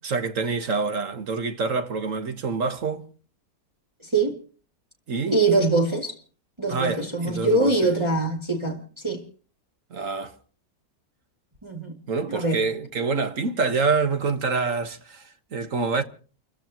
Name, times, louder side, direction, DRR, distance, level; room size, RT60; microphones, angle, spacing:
voice 1, 0.0-3.1 5.1-5.4 6.7-7.9 9.9-10.3 12.1-16.0, right 4 dB, 60° right, 1.8 m, -26 dB
voice 2, 4.0-4.4 5.3-6.1 6.6-9.2 11.6-12.0 12.3-12.6, right 3 dB, 20° right, 2.6 m, -23 dB
29.5 x 15.5 x 3.0 m
omnidirectional pair, 1.5 m